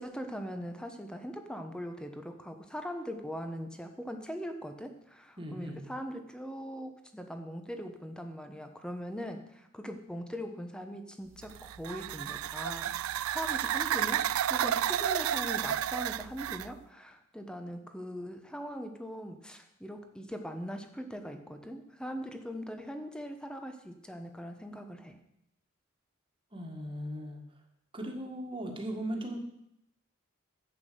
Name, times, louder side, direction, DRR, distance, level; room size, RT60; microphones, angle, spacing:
voice 1, 0.0-25.2, equal, 5° left, 6 dB, 1.0 m, -41 dB
voice 2, 5.4-5.8 26.5-27.4 27.9-29.5, right 1 dB, 25° right, 2 dB, 1.8 m, -38 dB
sound 1, 11.4-16.7, right 10 dB, 75° right, 0.4 m, -31 dB
11.0 x 8.4 x 6.8 m, 0.80 s
head